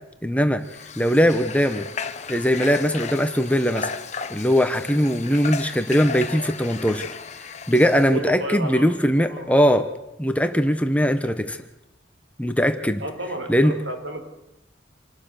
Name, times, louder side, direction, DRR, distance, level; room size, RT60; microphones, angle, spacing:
voice 1, 0.2-0.6 1.0-1.9 2.3-3.9 4.3-7.1 7.7-9.9 10.2-11.6 12.4-13.0 13.5-13.7, equal, 5° left, 8 dB, 1.2 m, -20 dB
Water / Water tap faucet, 0.6-8.2, left 5 dB, 35° left, 1.4 m, -35 dB
voice 2, 8.1-8.9 9.2-9.5 13.0-14.2, right 1 dB, 80° right, 4 dB, 5.4 m, -31 dB
27.5 x 20.5 x 6.7 m, 0.96 s
head